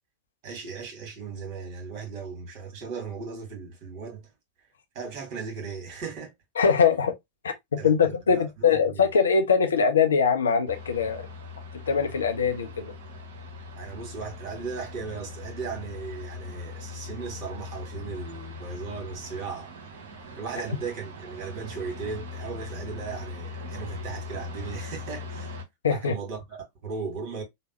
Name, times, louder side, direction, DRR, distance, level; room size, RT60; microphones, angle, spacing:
voice 1, 0.4-4.3 4.9-6.3 7.8-9.1 13.7-19.7 20.3-25.5 25.9-27.4, right 5 dB, 40° right, 1.7 m, -37 dB
voice 2, 6.6-7.1 7.7-11.2 11.9-12.9 25.8-26.1, left 6 dB, 70° left, 0.6 m, -22 dB
sound 1, 10.7-25.6, left 3 dB, 60° right, 0.8 m, -40 dB
3.2 x 2.2 x 2.9 m
figure-of-eight pair, 90°, 0 cm